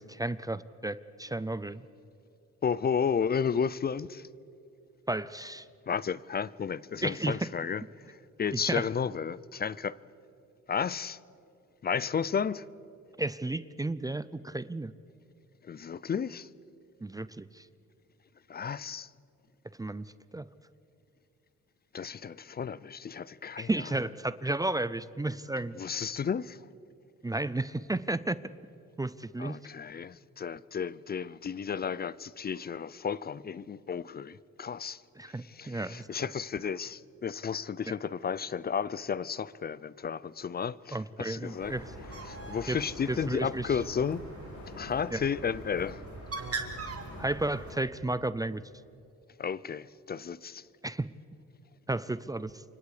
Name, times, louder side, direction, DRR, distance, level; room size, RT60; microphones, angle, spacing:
voice 1, 0.0-1.8 5.1-5.7 7.0-7.4 8.5-8.9 13.2-14.9 17.0-17.7 19.8-20.0 20.3-20.5 23.6-25.8 27.2-28.4 29.0-29.6 35.2-36.3 37.9-38.0 40.9-41.9 42.7-42.8 43.1-43.8 45.1-45.2 47.2-48.6 50.8-51.1 51.9-52.6, right 2 dB, 10° right, 0.6 m, -33 dB
voice 2, 2.6-4.3 5.9-10.0 10.7-11.2 11.8-12.7 15.6-16.5 18.5-19.1 21.9-23.8 25.7-26.6 29.4-35.0 35.4-41.7 42.2-44.2 44.8-46.0 49.4-50.6, left 6 dB, 30° left, 0.5 m, -33 dB
Subway metro underground, 41.4-47.8, left 5 dB, 70° left, 2.3 m, -48 dB
Bird, 41.6-47.7, right 4 dB, 50° right, 3.0 m, -42 dB
28.0 x 25.0 x 5.0 m
cardioid pair, 90°, 30 cm